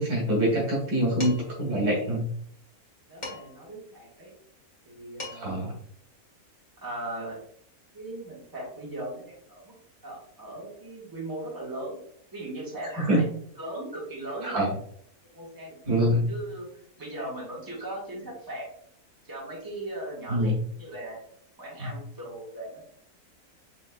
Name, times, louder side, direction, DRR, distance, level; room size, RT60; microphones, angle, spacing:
voice 1, 0.0-2.3 5.3-5.7 13.0-13.2 14.4-14.7 15.9-16.3 20.3-20.6 21.8-21.9, equal, 90° right, -2 dB, 2.1 m, -25 dB
Dishes pots and pans, 1.2-1.6 3.2-3.7 4.9-5.0 5.2-5.7, left 2 dB, 35° left, 1.1 m, -39 dB
voice 2, 3.1-4.3 4.8-5.5 6.8-7.4 7.9-9.7 10.0-12.0 12.3-13.3 13.6-14.7 15.3-15.8 16.3-18.6 19.2-20.5 20.8-21.2 21.6-22.8, right 1 dB, 15° right, -5 dB, 1.4 m, -38 dB
5.8 x 3.0 x 2.3 m, 0.63 s
omnidirectional pair, 1.6 m